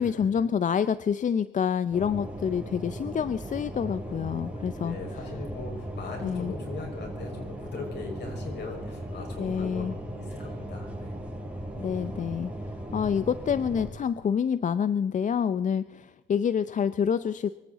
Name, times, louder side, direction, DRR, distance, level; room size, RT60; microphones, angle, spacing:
voice 1, 0.0-5.0 6.2-6.5 9.4-10.0 11.8-12.5 12.9-17.5, left 7 dB, 40° left, 14 dB, 0.5 m, -27 dB
sound 1, 1.9-13.9, right 1 dB, 5° right, 6.6 m, -37 dB
voice 2, 4.8-11.2, left 3 dB, 60° left, 1 dB, 5.7 m, -39 dB
23.0 x 15.0 x 4.1 m, 1.2 s
cardioid pair, 90°, 20 cm